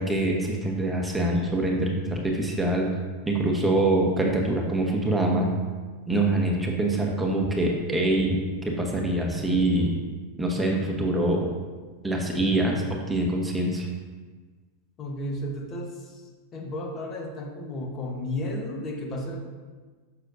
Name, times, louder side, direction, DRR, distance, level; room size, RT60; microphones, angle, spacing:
voice 1, 0.0-2.9 3.3-5.5 6.1-9.9 10.4-11.5 12.0-13.9, right 1 dB, 10° right, -1 dB, 1.0 m, -24 dB
voice 2, 15.0-19.4, left 1 dB, 35° left, 1 dB, 1.1 m, -33 dB
6.6 x 6.2 x 2.6 m, 1.4 s
hypercardioid pair, 100°, 0 cm